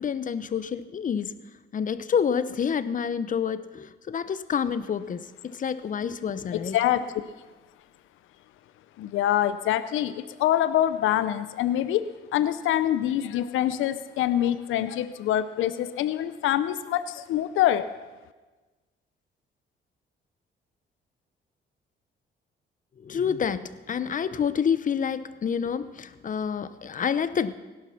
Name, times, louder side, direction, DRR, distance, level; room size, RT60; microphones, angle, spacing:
voice 1, 0.0-1.4 1.7-5.2 5.6-6.8 23.0-27.5, left 7 dB, 40° left, 14 dB, 0.8 m, -28 dB
voice 2, 6.5-7.1 9.0-17.9, left 12 dB, 85° left, 13 dB, 0.6 m, -25 dB
17.0 x 11.5 x 5.8 m, 1.3 s
cardioid pair, 90°, 20 cm